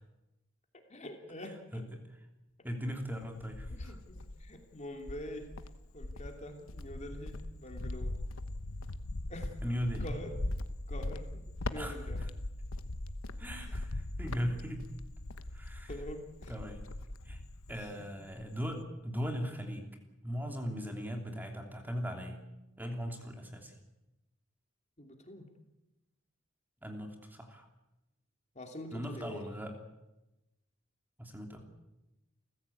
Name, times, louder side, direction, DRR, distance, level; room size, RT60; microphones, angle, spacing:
voice 1, 0.9-1.8 3.7-5.5 5.9-8.2 9.3-9.5 10.0-10.4 10.9-11.4 11.7-12.3 13.6-13.7 15.9-16.5 17.8-18.1 25.0-25.5 28.5-29.5, left 1 dB, 35° left, 4 dB, 2.9 m, -45 dB
voice 2, 2.6-4.0 9.6-10.0 11.8-12.0 13.4-14.8 15.5-15.9 16.5-16.8 17.2-17.4 17.7-19.8 20.2-22.4 22.8-23.7 26.8-27.7 28.9-29.7 31.2-31.6, equal, 10° right, 3 dB, 3.0 m, -38 dB
Cricket, 3.0-4.5 5.0-18.0 18.3-18.8, left 1 dB, 90° left, 1.1 m, -40 dB
29.5 x 15.0 x 8.6 m, 0.97 s
head